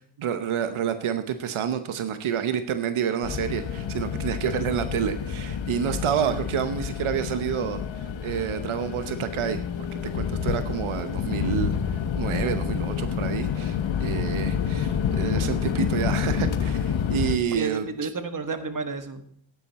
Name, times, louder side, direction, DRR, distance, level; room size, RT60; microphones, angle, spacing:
voice 1, 0.2-9.6 10.1-11.7 12.2-17.8, right 8 dB, 90° right, 10 dB, 0.9 m, -28 dB
sound 1, 3.2-17.4, left 7 dB, 70° left, 1.1 m, -28 dB
voice 2, 17.5-19.3, right 4 dB, 40° right, 9 dB, 1.6 m, -31 dB
14.0 x 10.5 x 4.2 m, 0.62 s
cardioid pair, 70°, 48 cm